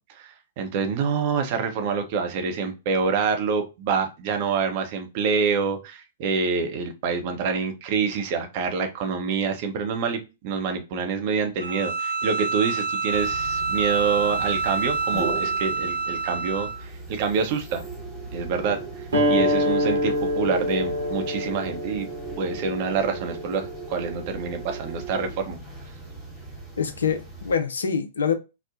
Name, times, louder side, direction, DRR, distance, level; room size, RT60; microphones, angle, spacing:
voice 1, 0.0-17.9 18.3-22.1 22.4-25.6, right 5 dB, 45° right, 0.6 m, -27 dB
Bowed string instrument, 11.6-16.8, right 4 dB, 85° right, 1.3 m, -27 dB
sound 1, 13.1-27.6, right 3 dB, 10° left, 1.0 m, -38 dB
sound 2, 19.1-24.3, left 1 dB, 65° right, 1.0 m, -26 dB
voice 2, 26.8-28.3, left 6 dB, 70° left, 0.4 m, -25 dB
3.0 x 2.0 x 2.4 m
figure-of-eight pair, 105°, 0 cm